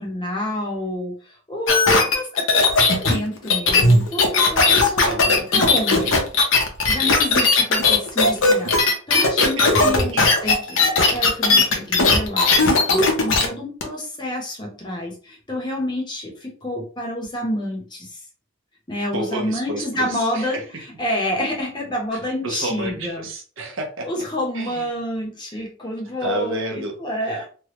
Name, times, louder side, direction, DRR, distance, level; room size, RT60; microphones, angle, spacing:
voice 1, 0.0-6.2 6.9-18.2 18.9-20.6 21.0-23.3 24.0-27.5, left 1 dB, 20° left, -1 dB, 0.8 m, -28 dB
sound 1, 1.7-13.5 13.8-13.9, left 3 dB, 70° left, 0.7 m, -17 dB
voice 2, 5.0-5.5 9.6-10.3 19.1-20.8 22.1-24.2 24.5-24.9 25.5-25.6 26.2-26.9 27.2-27.5, right 1 dB, 70° right, 3 dB, 0.8 m, -31 dB
3.2 x 2.2 x 2.9 m, 0.39 s
head